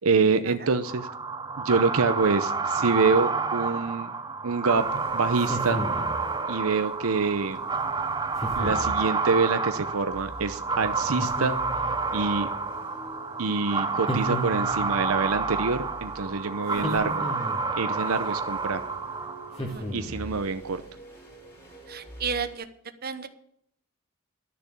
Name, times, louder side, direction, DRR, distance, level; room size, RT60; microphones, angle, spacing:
voice 1, 0.0-1.1 1.6-4.1 4.4-5.8 6.5-7.6 8.5-11.6 12.1-12.5 13.4-17.3 17.8-18.8 19.9-20.8, right 4 dB, 80° right, 10 dB, 0.7 m, -26 dB
sound 1, 0.8-19.7, right 4 dB, 20° right, 0.6 m, -29 dB
sound 2, 4.7-22.6, right 1 dB, 15° left, 3.3 m, -46 dB
sound 3, 5.4-6.2 8.4-9.0 11.2-12.0 14.1-14.9 16.7-17.7 19.6-20.3, equal, 30° left, 2.5 m, -33 dB
voice 2, 21.9-22.7 23.0-23.3, right 5 dB, 45° right, 10 dB, 1.0 m, -33 dB
12.5 x 6.8 x 8.5 m, 0.72 s
head